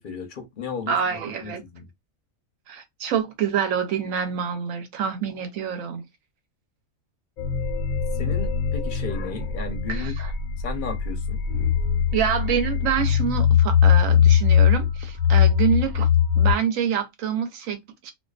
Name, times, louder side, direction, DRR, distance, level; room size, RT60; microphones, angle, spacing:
voice 1, 0.0-1.8 8.2-10.1 10.6-11.4, left 5 dB, 50° left, 0.7 m, -34 dB
voice 2, 0.9-1.6 2.7-6.0 9.9-10.3 12.1-16.1 16.3-18.1, right 8 dB, 75° right, 1.0 m, -26 dB
sound 1, 7.4-16.5, left 8 dB, 85° left, 1.0 m, -21 dB
2.4 x 2.3 x 2.3 m
omnidirectional pair, 1.4 m